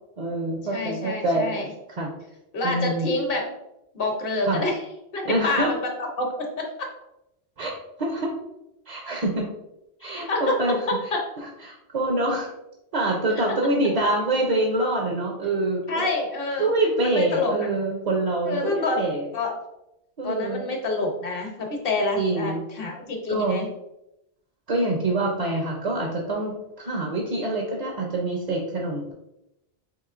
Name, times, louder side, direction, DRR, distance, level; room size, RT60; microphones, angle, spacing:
voice 1, 0.2-1.5 1.9-2.1 2.6-3.1 4.4-4.6 5.2-5.7 7.6-8.3 8.9-9.5 10.0-10.8 11.6-12.5 12.9-16.1 16.6-19.3 20.2-20.7 22.2-22.6 23.3-23.6 24.7-29.1, right 2 dB, 45° right, 0 dB, 0.6 m, -25 dB
voice 2, 0.7-1.7 2.5-3.5 3.9-4.8 5.1-6.7 10.0-10.6 10.9-11.2 13.4-13.5 15.9-16.7 17.0-17.7 18.5-19.0 19.3-19.5 20.2-23.7, left 2 dB, 65° left, 2 dB, 1.0 m, -27 dB
4.7 x 3.0 x 2.4 m, 0.87 s
omnidirectional pair, 1.1 m